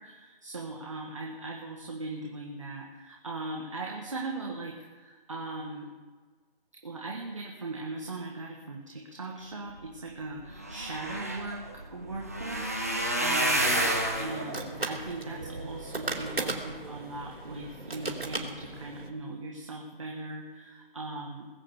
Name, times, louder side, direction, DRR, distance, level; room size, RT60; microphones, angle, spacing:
voice 1, 0.0-5.9 6.8-21.5, right 2 dB, 35° right, -1 dB, 1.6 m, -39 dB
sound 1, 10.0-10.1 10.3-16.7 17.2-17.7 18.1-18.3 18.6-18.7, right 1 dB, 15° right, 0.9 m, -31 dB
sound 2, 13.5-19.1, right 3 dB, 85° right, 3.5 m, -37 dB
20.0 x 6.7 x 8.1 m, 1.4 s
figure-of-eight pair, 175°, 29 cm